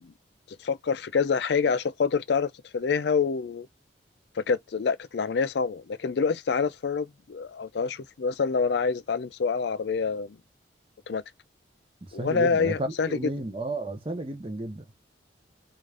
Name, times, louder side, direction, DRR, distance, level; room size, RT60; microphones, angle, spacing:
voice 1, 0.6-3.7 4.4-10.4 11.1-11.2 12.1-13.1, left 5 dB, 65° left, 0.4 m, -26 dB
voice 2, 12.0-14.9, right 2 dB, 30° right, 0.7 m, -33 dB
3.7 x 2.5 x 3.3 m
head